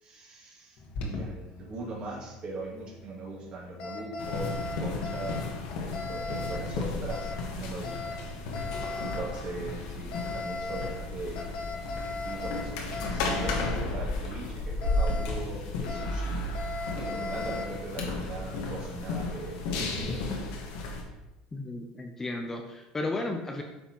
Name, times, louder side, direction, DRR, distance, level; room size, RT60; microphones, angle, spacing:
voice 1, 0.0-5.4 6.1-8.2 9.0-11.4 12.2-16.4 17.0-20.2, right 3 dB, 40° right, -3 dB, 2.2 m, -40 dB
Alarm, 0.8-20.2, left 3 dB, 55° left, 1.5 m, -39 dB
sound 1, 4.2-21.0, left 2 dB, 85° left, 1.3 m, -34 dB
voice 2, 21.5-23.6, left 2 dB, 15° left, 2 dB, 0.6 m, -34 dB
8.7 x 5.4 x 3.0 m, 1.0 s
cardioid pair, 140°, 3 cm